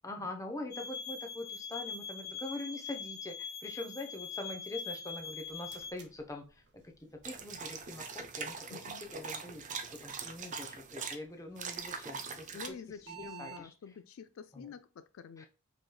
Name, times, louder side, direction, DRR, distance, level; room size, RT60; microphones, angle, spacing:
voice 1, 0.0-6.8 7.2-9.6 9.9-12.8 13.1-13.7 14.5-14.7 15.4-15.5, left 2 dB, 15° left, 0.7 m, -44 dB
sound 1, 0.7-5.9, left 5 dB, 45° left, 0.9 m, -42 dB
sound 2, 5.2-13.6, right 9 dB, 55° right, 0.8 m, -57 dB
sound 3, 7.2-11.2 11.6-12.7, right 5 dB, 35° right, 0.5 m, -42 dB
voice 2, 8.7-9.1 12.5-15.5, left 6 dB, 70° left, 0.3 m, -48 dB
5.0 x 3.1 x 2.2 m
head